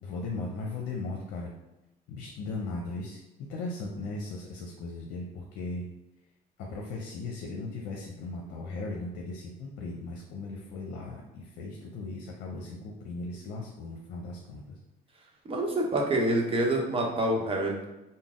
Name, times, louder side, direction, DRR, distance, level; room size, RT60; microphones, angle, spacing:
voice 1, 0.0-1.5 2.1-5.8 6.6-14.8, left 3 dB, 85° left, -1 dB, 0.7 m, -37 dB
voice 2, 15.5-17.9, right 1 dB, 35° right, 0 dB, 0.9 m, -27 dB
4.0 x 2.1 x 3.7 m, 0.98 s
cardioid pair, 110°, 17 cm